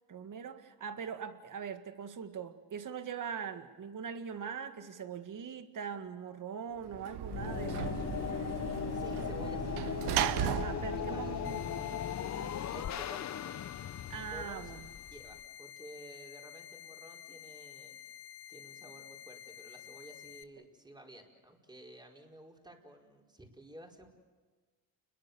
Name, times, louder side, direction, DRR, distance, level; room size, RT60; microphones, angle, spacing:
voice 1, 0.1-7.9 10.6-11.6 12.3-12.6 14.1-14.9, right 7 dB, 50° right, 9 dB, 2.0 m, -41 dB
Sliding door / Slam, 6.8-12.2, right 12 dB, 90° right, 0.9 m, -37 dB
sound 1, 7.3-15.4, left 9 dB, 45° left, 0.8 m, -38 dB
voice 2, 8.9-12.2 12.7-13.6 14.2-14.8 15.1-17.9 18.5-24.1, right 1 dB, 10° right, 1 dB, 4.8 m, -53 dB
sound 2, 11.4-20.4, left 10 dB, 75° left, 1.1 m, -50 dB
30.0 x 21.5 x 7.1 m, 1.4 s
cardioid pair, 80°, 39 cm